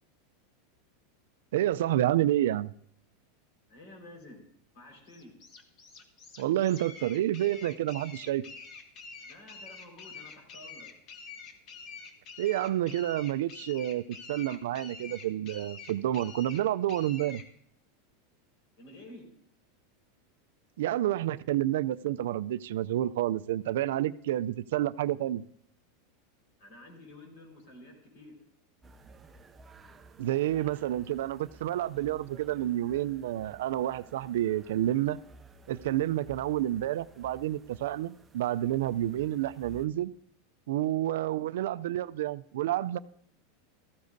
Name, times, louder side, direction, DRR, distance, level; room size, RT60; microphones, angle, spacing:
voice 1, 1.5-2.7 6.4-8.4 12.4-17.4 20.8-25.4 30.2-35.2 35.7-40.1 40.7-43.0, right 13 dB, 75° right, 0.4 m, -29 dB
voice 2, 3.7-4.5 4.7-5.3 9.2-10.9 18.8-19.3 26.6-28.3, left 1 dB, 55° left, 4.5 m, -50 dB
sound 1, 5.1-17.5, left 5 dB, 35° left, 1.1 m, -47 dB
sound 2, 28.8-39.9, right 3 dB, 15° right, 0.4 m, -55 dB
15.0 x 14.0 x 2.6 m
supercardioid pair, 165°, 0 cm